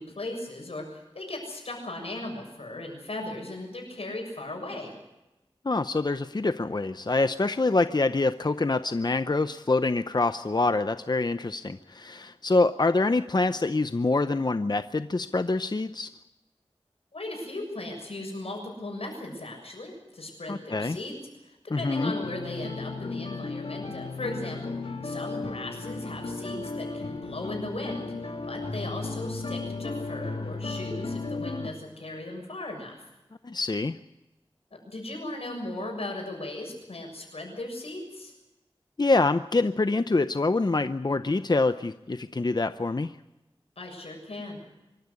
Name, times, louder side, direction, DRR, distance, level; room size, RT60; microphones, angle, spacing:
voice 1, 0.0-4.9 17.1-28.1 28.5-33.1 34.7-38.3 43.8-44.6, left 2 dB, 90° left, 2 dB, 7.0 m, -37 dB
voice 2, 5.6-16.1 20.5-21.0 21.7-22.1 33.4-34.0 39.0-43.2, left 3 dB, 45° left, 11 dB, 0.7 m, -25 dB
sound 1, 21.9-31.7, left 3 dB, 70° left, 2.5 m, -35 dB
25.0 x 13.5 x 9.8 m, 0.97 s
wide cardioid pair, 50°, 10 cm